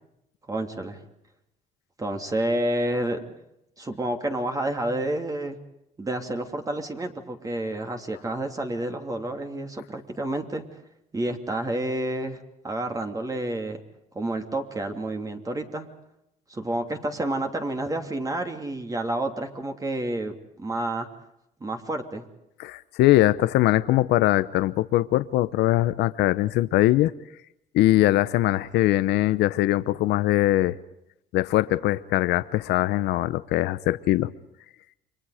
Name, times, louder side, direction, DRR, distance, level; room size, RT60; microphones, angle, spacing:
voice 1, 0.5-1.0 2.0-3.4 3.8-5.6 6.0-10.6 11.1-12.4 12.6-13.8 14.1-15.9 16.5-21.1 21.6-22.2, right 1 dB, 20° right, 4 dB, 3.0 m, -29 dB
voice 2, 22.6-27.1 27.7-30.8 31.3-34.3, left 16 dB, 80° left, 14 dB, 0.9 m, -21 dB
30.0 x 24.5 x 5.0 m, 0.83 s
cardioid pair, 110°, 17 cm